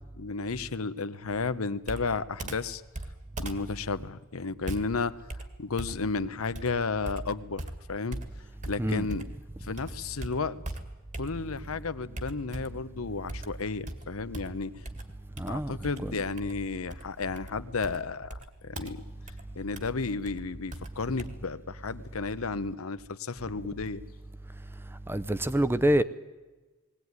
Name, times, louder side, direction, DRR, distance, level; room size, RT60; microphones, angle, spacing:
voice 1, 0.1-2.8 3.4-5.2 5.6-7.6 7.9-8.2 8.7-9.2 9.6-10.6 11.2-14.8 15.4-19.0 19.6-24.0, left 4 dB, 85° left, 0.9 m, -33 dB
Computer keyboard, 1.8-9.5 9.8-11.7 12.2-12.9 13.3-21.3, right 1 dB, 35° right, 1.8 m, -41 dB
voice 2, 15.4-15.7 16.0-16.1 25.1-26.0, right 1 dB, 10° right, 0.6 m, -26 dB
20.0 x 17.5 x 9.5 m
head